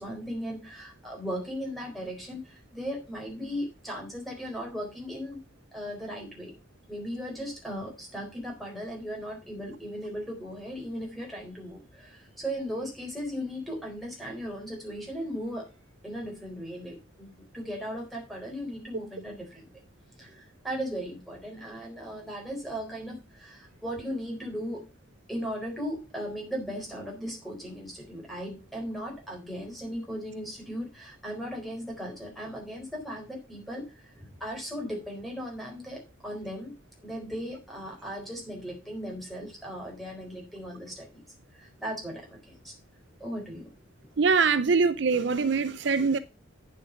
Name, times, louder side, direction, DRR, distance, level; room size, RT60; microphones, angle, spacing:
voice 1, 0.0-5.4 5.7-6.5 6.9-15.7 16.0-19.7 20.2-24.9 25.3-36.7 37.0-41.2 41.5-42.7 43.2-43.7, equal, ahead, 4.2 m, -37 dB
voice 2, 44.2-46.2, right 5 dB, 60° right, 0.5 m, -23 dB
9.1 x 7.5 x 5.6 m
head